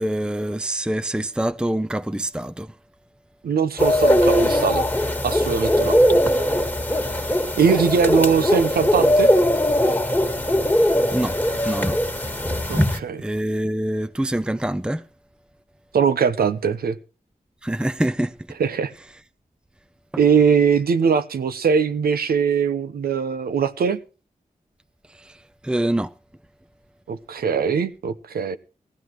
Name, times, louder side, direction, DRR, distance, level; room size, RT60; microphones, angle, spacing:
voice 1, 0.0-2.7 5.8-6.2 11.1-11.4 11.6-12.0 12.7-15.0 17.6-18.3 25.1-26.1, right 1 dB, 5° right, 0.6 m, -26 dB
voice 2, 3.4-4.8 5.2-6.0 7.6-9.3 12.7-13.2 15.9-17.0 18.6-18.9 20.2-24.0 27.1-28.6, right 6 dB, 90° right, 0.9 m, -21 dB
sound 1, 3.8-13.0, equal, 10° left, 1.8 m, -20 dB
18.5 x 14.5 x 3.1 m
cardioid pair, 45°, 15 cm